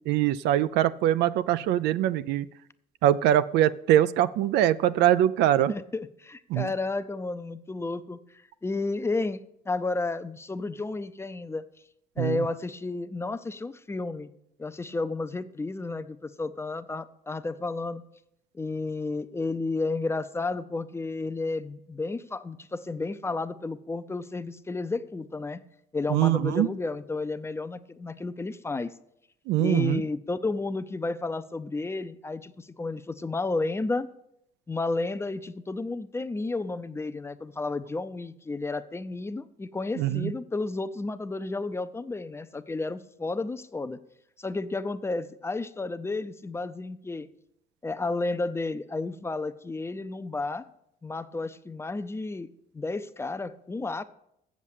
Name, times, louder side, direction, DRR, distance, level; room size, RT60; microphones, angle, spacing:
voice 1, 0.1-2.5 3.0-5.7 6.5-6.7 12.2-12.4 26.1-26.7 29.5-30.0 40.0-40.3, right 12 dB, 80° right, 16 dB, 0.4 m, -23 dB
voice 2, 5.7-8.2 8.6-11.6 12.2-14.3 14.6-18.0 18.5-25.6 25.9-28.9 29.6-34.1 34.7-44.0 44.4-47.3 47.8-50.6 51.0-52.5 52.7-54.0, left 3 dB, 15° left, 12 dB, 0.5 m, -32 dB
7.4 x 7.2 x 8.2 m, 0.78 s
cardioid pair, 110°, 17 cm